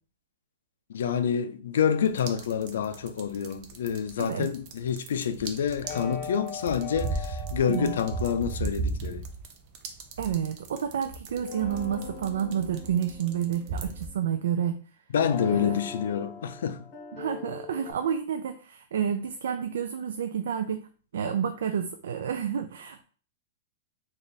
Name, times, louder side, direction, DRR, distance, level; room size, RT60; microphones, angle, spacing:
voice 1, 0.9-9.2 15.1-16.9, left 8 dB, 85° left, 0.4 m, -28 dB
sound 1, 2.1-14.1, right 4 dB, 40° right, 0.6 m, -36 dB
sound 2, 5.8-8.6 11.3-14.7 15.2-17.9, left 5 dB, 30° left, 0.9 m, -41 dB
voice 2, 7.6-8.0 10.2-14.8 15.5-15.8 17.1-20.8 21.1-23.0, right 8 dB, 85° right, 0.3 m, -30 dB
3.2 x 2.4 x 4.0 m
supercardioid pair, 160°, 0 cm